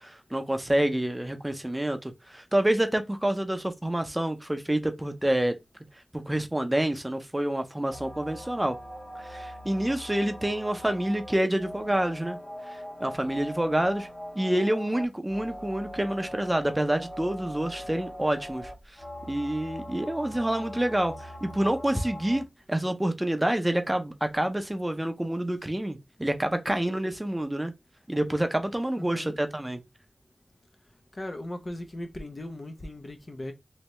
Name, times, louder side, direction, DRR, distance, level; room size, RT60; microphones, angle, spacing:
voice 1, 0.0-5.6 6.1-8.8 9.2-12.4 12.7-14.1 14.3-19.0 19.3-27.7 28.1-29.8, right 1 dB, 15° right, 0.5 m, -28 dB
sound 1, 7.9-22.4, equal, 75° left, 1.9 m, -41 dB
voice 2, 29.0-29.4 31.1-33.5, left 1 dB, 40° left, 0.6 m, -38 dB
3.2 x 2.6 x 3.0 m
wide cardioid pair, 70°, 0 cm